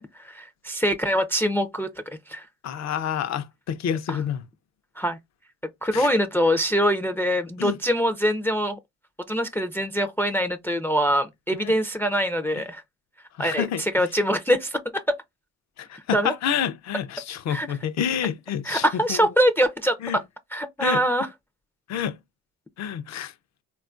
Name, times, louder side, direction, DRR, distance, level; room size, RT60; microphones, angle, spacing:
voice 1, 0.0-1.9 2.3-2.5 4.1-4.2 5.0-5.2 5.8-8.8 9.3-12.8 13.4-15.2 15.9-16.3 17.5-17.7 18.6-20.2 20.5-21.3, equal, 10° left, 0.4 m, -24 dB
voice 2, 2.6-4.4 5.9-6.1 7.6-7.8 11.6-11.7 13.4-14.1 15.8-19.3 20.0-20.2 20.8-21.0 21.9-22.2 22.8-23.3, left 9 dB, 60° left, 0.6 m, -28 dB
3.6 x 2.3 x 2.4 m
cardioid pair, 80°, 30 cm